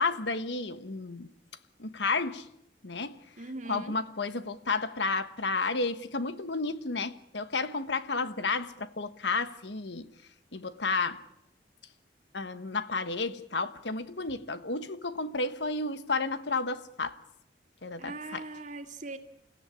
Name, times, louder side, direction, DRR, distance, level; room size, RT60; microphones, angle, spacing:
voice 1, 0.0-1.3 1.8-2.5 2.8-3.2 3.7-10.1 10.5-11.2 12.3-17.2 17.8-18.4, left 3 dB, 75° left, 1.3 m, -32 dB
voice 2, 3.4-3.9 18.0-19.2, right 2 dB, 45° right, 2.2 m, -40 dB
29.5 x 16.0 x 9.9 m
head